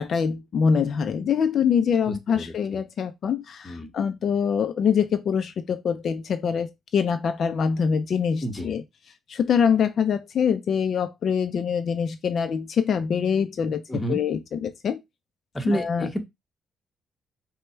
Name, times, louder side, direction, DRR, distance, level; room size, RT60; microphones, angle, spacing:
voice 1, 0.0-8.8 9.3-15.0 15.6-16.1, left 7 dB, 60° left, 0.5 m, -24 dB
voice 2, 2.1-2.8 3.6-3.9 8.4-8.8 13.9-14.2 15.5-16.2, equal, 20° left, 1.1 m, -29 dB
5.2 x 2.3 x 4.4 m
cardioid pair, 90°, 0 cm